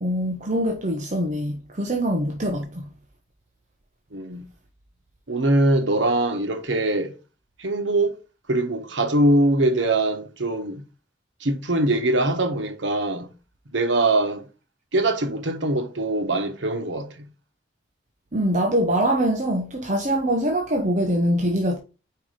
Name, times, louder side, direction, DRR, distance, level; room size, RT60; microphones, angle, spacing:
voice 1, 0.0-2.9 18.3-21.8, right 1 dB, 40° right, 0.8 m, -23 dB
voice 2, 4.1-4.4 5.3-7.2 7.6-8.2 8.5-10.8 11.4-13.3 13.7-14.5 14.9-17.3, right 1 dB, 90° right, 1.1 m, -22 dB
4.8 x 4.7 x 5.1 m
head